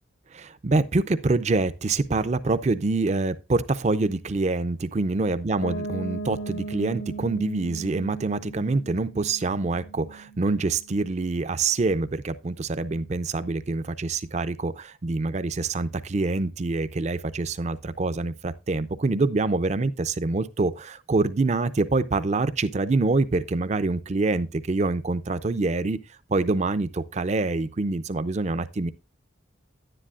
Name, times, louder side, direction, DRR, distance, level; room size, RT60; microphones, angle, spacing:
voice 1, 0.3-26.0 26.3-28.9, right 3 dB, 35° right, 0.4 m, -26 dB
Piano, 5.6-11.3, right 3 dB, 70° left, 0.7 m, -38 dB
10.5 x 10.0 x 2.4 m
head